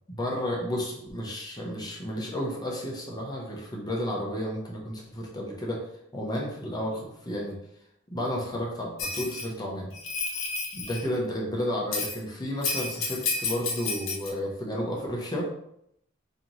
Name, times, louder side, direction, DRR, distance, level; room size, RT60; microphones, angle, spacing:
voice 1, 0.1-5.8 6.1-7.5 8.1-9.9 10.7-15.4, equal, 20° left, -3 dB, 0.9 m, -32 dB
Bell, 9.0-9.5 9.9-11.0 11.9-12.2 12.6-14.3, left 4 dB, 80° left, 0.8 m, -31 dB
3.3 x 3.0 x 3.9 m, 0.75 s
head